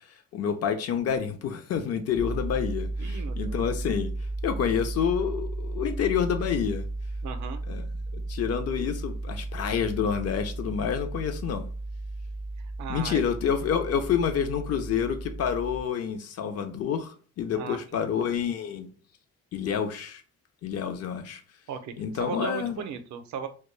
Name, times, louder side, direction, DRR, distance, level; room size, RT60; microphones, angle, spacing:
voice 1, 0.3-4.1 4.4-6.9 7.7-7.9 8.1-11.7 12.9-18.9 19.5-20.2 20.6-21.4 22.0-22.8, left 8 dB, 55° left, 0.5 m, -28 dB
sound 1, 2.2-15.8, right 2 dB, ahead, 0.4 m, -34 dB
voice 2, 3.0-3.6 7.2-7.6 12.6-13.3 17.5-18.1 21.7-21.9 22.2-23.5, right 7 dB, 70° right, 0.5 m, -36 dB
2.2 x 2.0 x 3.0 m
cardioid pair, 90°, 30 cm